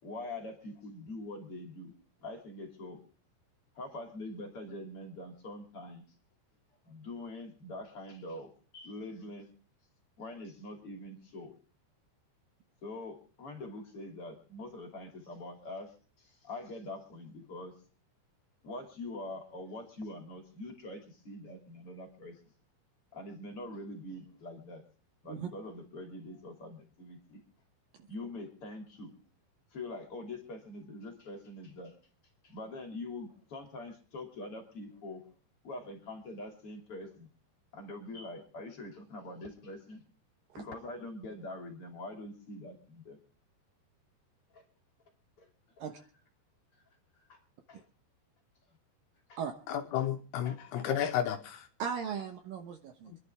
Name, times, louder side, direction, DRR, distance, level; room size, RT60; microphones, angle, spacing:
voice 1, 0.0-1.9 2.2-3.0 3.7-6.0 6.8-9.5 10.2-11.5 12.8-17.7 18.6-22.4 23.1-24.8 25.2-27.4 28.1-29.1 29.7-31.9 32.4-35.3 35.6-37.3 37.7-40.0 40.5-43.2 44.5-44.6 45.4-45.5 47.2-47.4 47.7-47.8 49.3-49.4 50.4-50.8, left 2 dB, 35° left, 3 dB, 3.1 m, -44 dB
voice 2, 49.7-51.7 53.1-53.2, left 10 dB, 75° left, 7 dB, 2.7 m, -32 dB
voice 3, 51.8-53.1, right 7 dB, 70° right, 5 dB, 2.3 m, -37 dB
26.0 x 11.5 x 3.5 m, 0.38 s
omnidirectional pair, 5.2 m